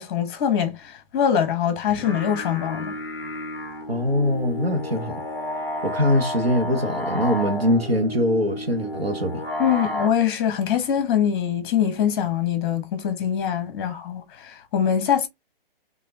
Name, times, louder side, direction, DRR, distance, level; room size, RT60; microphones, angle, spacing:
voice 1, 0.0-2.9 9.6-15.3, left 9 dB, 25° left, 1.0 m, -23 dB
sound 1, 1.8-10.1, left 1 dB, 5° left, 0.6 m, -31 dB
voice 2, 3.9-5.2 5.8-9.4, equal, 85° right, 1.3 m, -22 dB
4.8 x 2.8 x 3.7 m
figure-of-eight pair, 130°, 30 cm